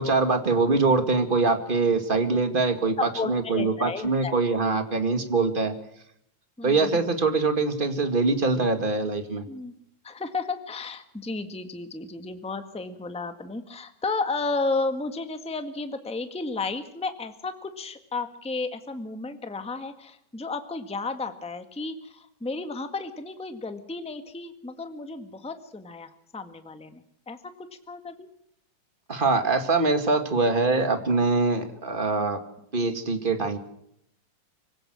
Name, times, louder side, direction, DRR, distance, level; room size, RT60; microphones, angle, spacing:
voice 1, 0.0-3.0 3.3-5.7 6.6-9.4 29.1-32.4 32.7-33.6, right 3 dB, 20° right, 7 dB, 1.7 m, -23 dB
voice 2, 3.0-4.6 6.6-7.2 9.5-9.7 10.0-28.3, left 3 dB, 5° left, 8 dB, 0.5 m, -33 dB
25.5 x 17.0 x 6.3 m, 0.74 s
omnidirectional pair, 3.7 m